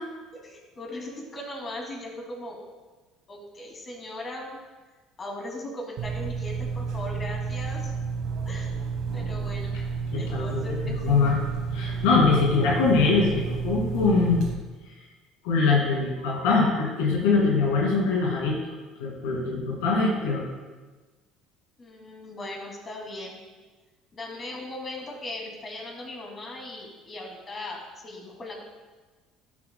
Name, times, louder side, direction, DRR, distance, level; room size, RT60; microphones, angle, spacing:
voice 1, 0.4-2.6 3.3-4.6 5.2-7.9 8.4-8.8 9.1-9.7 10.2-11.2 21.8-23.4 24.1-28.6, left 1 dB, 35° left, 0 dB, 2.5 m, -38 dB
sound 1, 6.0-14.5, right 5 dB, 70° right, 1.1 m, -31 dB
voice 2, 10.1-11.4 11.7-14.4 15.4-18.6 19.0-20.5, left 4 dB, 85° left, -3 dB, 2.3 m, -23 dB
12.0 x 8.4 x 2.2 m, 1.3 s
supercardioid pair, 90°, 0 cm